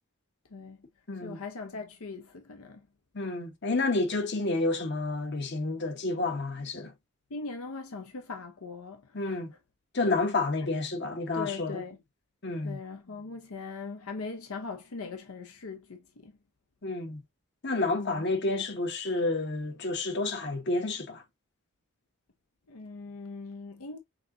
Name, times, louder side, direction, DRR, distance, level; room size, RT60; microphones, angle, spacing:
voice 1, 0.5-0.9 1.2-2.9 7.3-9.4 10.0-10.2 11.3-12.0 12.6-16.3 17.9-18.3 22.7-24.0, left 4 dB, 80° left, 0.7 m, -40 dB
voice 2, 1.1-1.4 3.1-6.9 9.1-9.5 9.9-11.8 12.4-12.8 16.8-17.2 17.6-21.2, left 2 dB, 50° left, 1.1 m, -30 dB
6.3 x 2.8 x 2.6 m
head